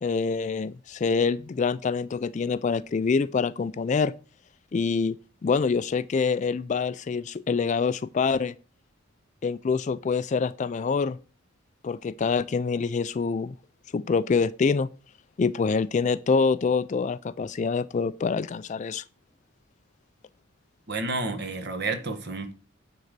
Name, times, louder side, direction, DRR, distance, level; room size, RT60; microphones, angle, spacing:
voice 1, 0.0-4.1 4.7-5.2 5.4-8.5 9.4-11.2 11.8-13.6 13.9-14.9 15.4-19.0, left 5 dB, 35° left, 0.3 m, -25 dB
voice 2, 20.9-22.5, right 3 dB, 50° right, 1.2 m, -30 dB
9.4 x 3.9 x 6.6 m
head